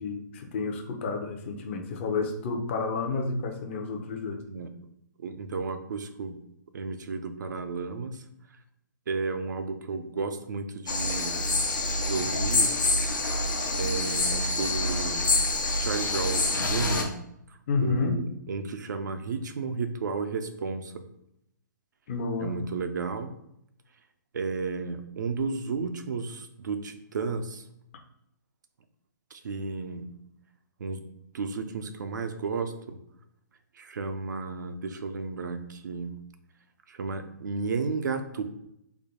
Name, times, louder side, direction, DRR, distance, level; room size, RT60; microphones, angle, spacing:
voice 1, 0.0-4.4 17.7-18.2 22.1-22.5, left 4 dB, 35° left, 3 dB, 0.6 m, -30 dB
voice 2, 5.2-6.4 6.7-8.2 9.1-11.6 12.0-12.7 13.8-15.5 15.8-17.1 17.8-21.0 22.4-23.3 24.3-27.6 29.3-30.1 30.8-31.0 31.3-33.0 33.8-36.2 36.9-38.4, right 4 dB, 70° right, 7 dB, 0.5 m, -33 dB
sound 1, 10.9-17.0, left 2 dB, 85° left, 0.8 m, -26 dB
3.4 x 2.1 x 3.7 m, 0.78 s
hypercardioid pair, 145°, 10 cm